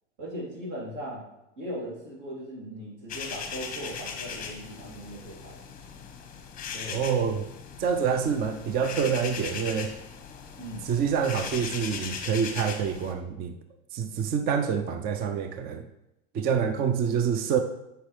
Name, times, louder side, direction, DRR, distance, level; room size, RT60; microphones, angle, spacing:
voice 1, 0.2-1.2 1.6-5.6 6.7-7.0 10.6-10.9, equal, 50° right, -4 dB, 3.0 m, -38 dB
sound 1, 3.1-13.1, left 6 dB, 25° left, 1.0 m, -39 dB
voice 2, 6.9-7.5 7.8-9.9 10.8-13.5 13.9-15.9 16.3-17.6, right 7 dB, 25° right, 8 dB, 0.5 m, -27 dB
8.4 x 5.5 x 3.3 m, 0.87 s
hypercardioid pair, 115°, 35 cm